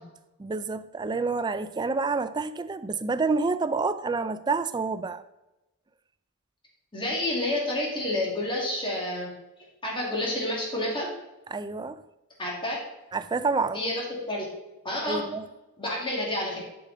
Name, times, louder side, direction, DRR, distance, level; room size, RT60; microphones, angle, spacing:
voice 1, 0.4-5.2 11.5-12.0 13.1-13.8 15.1-15.5, right 4 dB, 20° right, 0.4 m, -28 dB
voice 2, 6.9-9.3 9.8-11.1 12.4-12.8 13.7-14.0 14.3-14.5 14.8-15.2 15.8-16.6, left 1 dB, 25° left, 2.1 m, -29 dB
10.5 x 4.9 x 3.8 m
head